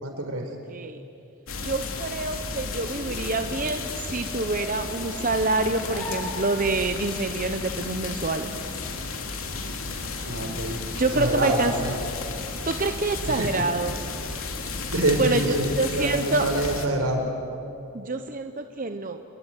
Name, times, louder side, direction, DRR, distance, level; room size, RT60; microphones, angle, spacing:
voice 1, 0.0-0.5 10.2-10.8 11.1-11.9 13.3-13.6 14.8-17.2, right 1 dB, 80° right, 4 dB, 4.9 m, -26 dB
voice 2, 0.7-1.0 1.6-8.5 11.0-11.7 12.7-14.0 15.2-16.4 17.9-19.2, right 3 dB, 40° right, 7 dB, 0.9 m, -27 dB
sound 1, 1.5-16.9, left 3 dB, 75° left, 2.8 m, -33 dB
sound 2, 2.5-7.0, left 1 dB, 10° left, 4.3 m, -42 dB
28.5 x 22.5 x 9.3 m, 2.7 s
head